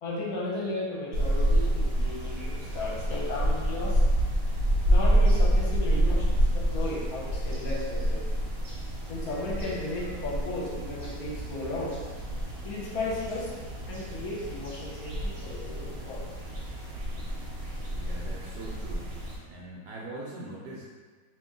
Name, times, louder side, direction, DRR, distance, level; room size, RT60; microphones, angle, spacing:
voice 1, 0.0-4.0 4.8-8.2 9.1-12.0 12.6-13.5 13.9-16.2, left 2 dB, 60° left, -5 dB, 1.1 m, -35 dB
sound 1, 1.1-19.4, equal, 50° right, 0.9 m, -28 dB
voice 2, 17.9-19.1 19.5-20.9, right 1 dB, 75° right, -5 dB, 1.0 m, -42 dB
2.9 x 2.8 x 3.6 m, 1.4 s
omnidirectional pair, 2.2 m